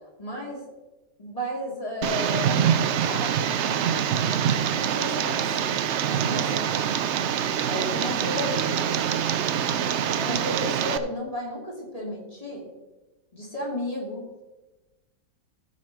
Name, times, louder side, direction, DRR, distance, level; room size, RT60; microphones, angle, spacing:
voice 1, 0.2-0.6 1.2-3.8 4.8-6.6 7.7-8.9 9.8-12.7 13.3-14.4, left 1 dB, 20° left, -3 dB, 2.7 m, -33 dB
Tick, 2.0-11.0, right 8 dB, 85° right, 0.6 m, -25 dB
15.0 x 5.6 x 4.7 m, 1.1 s
omnidirectional pair, 1.9 m